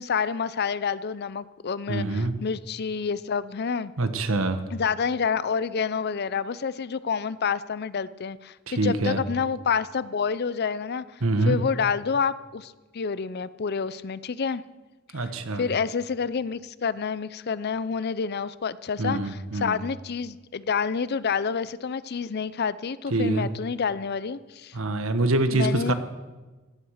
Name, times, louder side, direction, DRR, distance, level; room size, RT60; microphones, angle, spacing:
voice 1, 0.0-3.9 4.7-14.6 15.1-15.3 15.6-24.8 25.5-25.9, left 6 dB, 50° left, 17 dB, 0.5 m, -28 dB
voice 2, 1.9-2.3 4.0-4.6 8.7-9.2 11.2-11.6 15.1-15.6 19.0-19.8 23.1-23.5 24.7-25.9, right 2 dB, 80° right, 9 dB, 1.3 m, -25 dB
16.5 x 11.5 x 6.5 m, 1.2 s
head